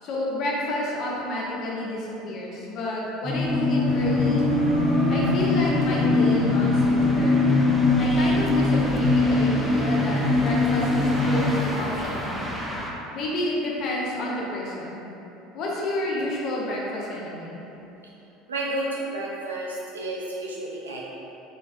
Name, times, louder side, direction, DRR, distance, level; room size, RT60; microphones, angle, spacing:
voice 1, 0.0-4.5 5.1-7.4 8.0-12.3 13.1-15.0 15.5-17.6, left 1 dB, 45° left, -4 dB, 0.8 m, -30 dB
sound 1, 3.2-11.5, left 2 dB, 40° right, 1.0 m, -21 dB
sound 2, 3.9-12.9, equal, ahead, 0.5 m, -34 dB
voice 2, 18.5-21.0, right 1 dB, 80° right, -4 dB, 0.5 m, -31 dB
4.0 x 3.6 x 2.6 m, 3.0 s
figure-of-eight pair, 65°, 0 cm